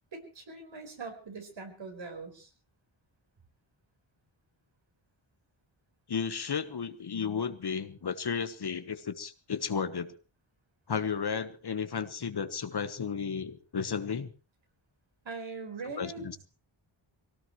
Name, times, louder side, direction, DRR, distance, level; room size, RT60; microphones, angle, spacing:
voice 1, 0.1-2.5 15.2-16.3, right 4 dB, 70° right, 4 dB, 4.6 m, -41 dB
voice 2, 6.1-10.1 10.9-14.3 16.0-16.4, left 6 dB, 55° left, 11 dB, 1.3 m, -33 dB
23.5 x 18.0 x 3.1 m, 0.34 s
wide cardioid pair, 145°, 47 cm